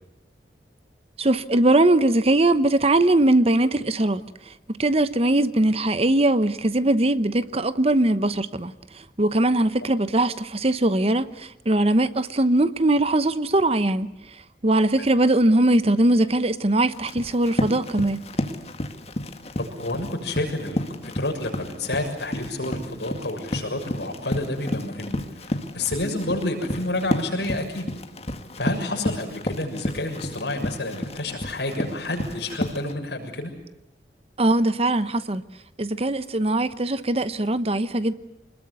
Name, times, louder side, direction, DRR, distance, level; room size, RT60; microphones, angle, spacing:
voice 1, 1.2-4.2 4.8-8.7 9.2-14.1 14.6-18.2 34.4-35.4 35.8-38.1, right 1 dB, 35° right, 0.9 m, -21 dB
Run, 16.9-32.9, left 1 dB, 35° left, 1.9 m, -31 dB
voice 2, 19.6-27.9 28.6-33.5, left 2 dB, 80° left, 6.8 m, -29 dB
25.5 x 21.0 x 9.6 m
head